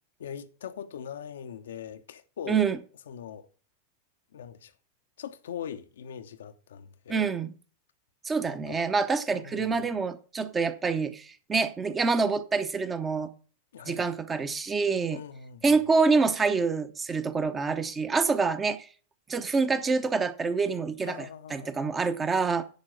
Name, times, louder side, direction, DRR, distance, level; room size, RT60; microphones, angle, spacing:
voice 1, 0.2-2.7 3.1-3.5 4.3-4.7 5.2-7.3 8.4-8.8 9.3-9.9 13.7-14.1 15.1-15.8 21.0-21.9, left 8 dB, 60° left, 0.7 m, -41 dB
voice 2, 2.5-2.8 7.1-7.5 8.2-13.3 13.9-15.2 15.6-18.9 19.3-21.2 21.5-22.6, right 4 dB, 20° right, 0.9 m, -26 dB
10.5 x 4.5 x 7.4 m
figure-of-eight pair, 90°, 0 cm